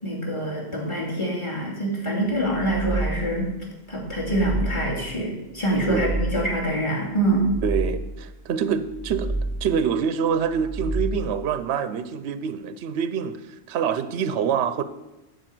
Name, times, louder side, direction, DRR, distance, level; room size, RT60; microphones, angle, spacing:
voice 1, 0.0-3.5 3.9-7.5, right 1 dB, 25° left, -3 dB, 2.5 m, -25 dB
sound 1, 2.4-3.5 4.0-5.1 5.6-6.7 7.2-8.3 8.8-9.9 10.4-11.5, right 2 dB, 10° right, 0.6 m, -30 dB
voice 2, 7.6-9.3 9.6-13.4 13.7-14.8, right 7 dB, 65° right, 12 dB, 0.9 m, -25 dB
12.5 x 5.1 x 7.6 m, 1.0 s
omnidirectional pair, 1.3 m